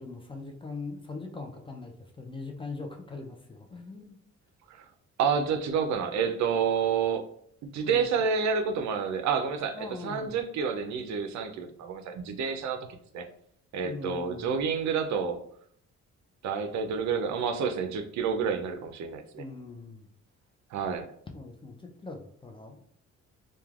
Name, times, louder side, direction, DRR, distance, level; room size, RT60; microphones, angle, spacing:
voice 1, 0.0-4.2 7.8-8.2 9.7-10.4 13.8-14.5 19.4-20.1 21.3-22.8, left 3 dB, 15° left, 2 dB, 0.4 m, -41 dB
voice 2, 5.2-7.2 7.6-13.3 13.7-15.4 16.4-19.4 20.7-21.1, right 6 dB, 65° right, 7 dB, 0.5 m, -29 dB
3.1 x 2.2 x 2.3 m, 0.65 s
cardioid pair, 90°, 30 cm